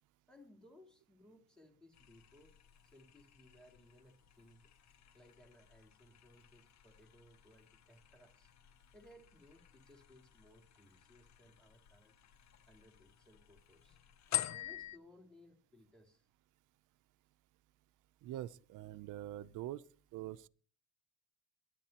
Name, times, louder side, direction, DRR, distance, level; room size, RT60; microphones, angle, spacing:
voice 1, 0.3-2.5 2.8-8.5 8.9-12.1 12.7-14.0 14.5-16.3, left 1 dB, 5° left, 3.4 m, -63 dB
sound 1, 1.9-15.0, left 14 dB, 65° left, 0.7 m, -48 dB
voice 2, 18.2-19.8 20.1-20.5, right 13 dB, 90° right, 0.6 m, -44 dB
23.0 x 11.0 x 2.9 m
cardioid pair, 90°, 30 cm